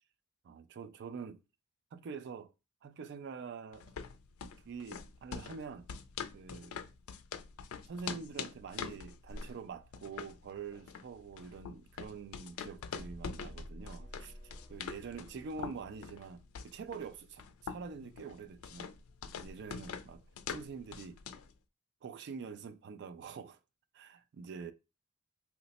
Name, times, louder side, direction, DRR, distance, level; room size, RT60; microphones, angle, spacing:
voice 1, 0.4-1.4 1.9-2.5 2.8-3.9 4.4-5.9 6.3-6.8 7.9-18.9 19.4-21.2 22.0-23.6 23.9-24.7, right 5 dB, 55° right, 0.3 m, -46 dB
sound 1, 3.7-21.5, left 6 dB, 80° left, 0.4 m, -45 dB
sound 2, 13.0-15.7, equal, 30° right, 0.9 m, -51 dB
sound 3, 13.6-16.4, left 2 dB, 20° left, 0.7 m, -62 dB
3.0 x 2.1 x 4.0 m
head